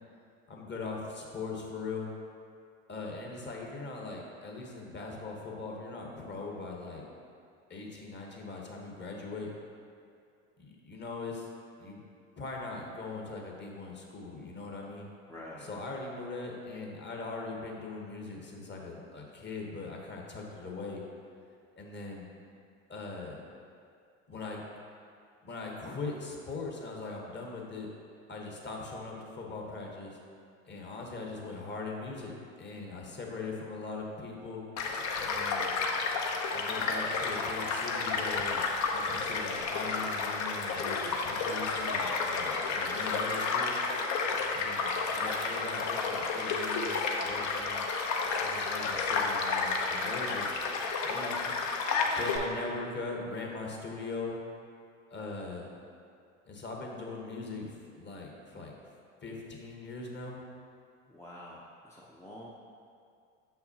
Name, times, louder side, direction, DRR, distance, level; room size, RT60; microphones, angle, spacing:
voice 1, 0.5-2.1 2.9-7.0 7.7-9.5 10.6-11.5 11.8-12.0 12.4-15.1 15.6-21.0 21.8-22.3 22.9-23.4 24.3-24.6 25.4-27.9 28.3-30.2 30.7-34.6 35.2-35.7 36.5-38.6 38.9-43.7 44.5-47.8 48.4-50.6 51.0-51.5 52.2-54.4 55.1-55.7 56.5-58.7 59.2-60.4, left 3 dB, 30° left, -1 dB, 1.2 m, -40 dB
voice 2, 15.3-15.7 61.1-62.5, left 1 dB, 5° left, -5 dB, 0.6 m, -47 dB
Child speech kid speaking / Stream / Car passing by, 34.8-52.4, left 4 dB, 50° left, 0.8 m, -31 dB
6.3 x 5.8 x 2.8 m, 2.3 s
hypercardioid pair, 80°, 38 cm